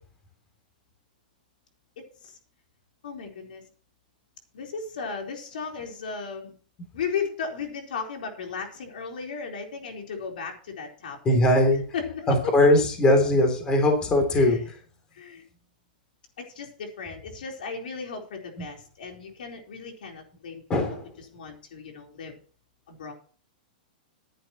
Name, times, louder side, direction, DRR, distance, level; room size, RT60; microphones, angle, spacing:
voice 1, 2.0-2.4 3.0-3.6 4.5-6.5 6.9-11.4 11.9-12.5 14.3-14.6 15.1-15.4 16.4-20.6 20.9-21.0 21.3-22.4 22.9-23.1, left 5 dB, 75° left, 2 dB, 4.2 m, -35 dB
voice 2, 11.2-11.8 12.3-14.7 20.7-21.1, left 1 dB, 15° left, 5 dB, 3.2 m, -20 dB
14.5 x 10.5 x 3.1 m, 0.42 s
hypercardioid pair, 160°, 5 cm